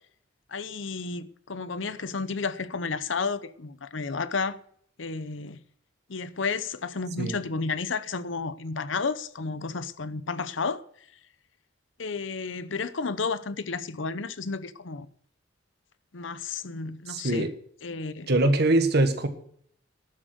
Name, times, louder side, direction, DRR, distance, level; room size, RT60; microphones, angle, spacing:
voice 1, 0.5-4.6 5.0-5.6 6.1-11.1 12.0-15.1 16.1-17.5 17.8-18.3, left 4 dB, 70° left, 0.8 m, -32 dB
voice 2, 17.1-17.5 18.3-19.3, right 2 dB, 55° right, 1.6 m, -22 dB
12.0 x 7.4 x 7.9 m
head